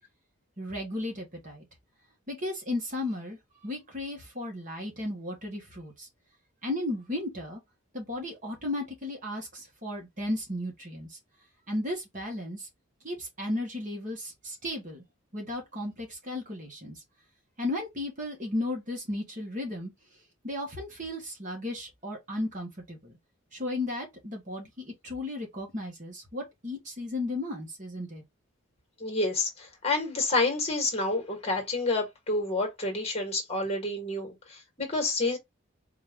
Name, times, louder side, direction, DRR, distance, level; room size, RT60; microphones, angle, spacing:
voice 1, 0.6-1.7 2.3-3.4 3.6-6.1 6.6-7.6 7.9-11.2 11.7-12.7 13.0-15.0 15.3-17.0 17.6-19.9 20.4-23.1 23.5-28.2, left 1 dB, 35° right, 1.7 m, -35 dB
voice 2, 29.0-35.4, left 2 dB, 30° left, 1.7 m, -29 dB
4.4 x 3.0 x 3.7 m
head